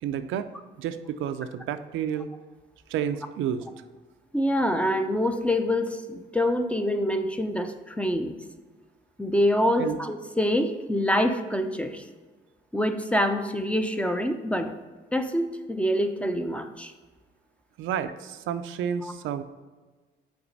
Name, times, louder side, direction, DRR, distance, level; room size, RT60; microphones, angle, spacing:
voice 1, 0.0-0.5 0.8-2.3 2.9-3.6 9.8-10.0 17.8-19.4, right 9 dB, 80° right, 10 dB, 0.4 m, -30 dB
voice 2, 4.3-8.3 9.2-12.0 12.7-14.7 15.1-16.9 19.0-19.1, equal, 5° left, 7 dB, 0.5 m, -26 dB
5.9 x 4.1 x 4.0 m, 1.3 s
cardioid pair, 90°, 20 cm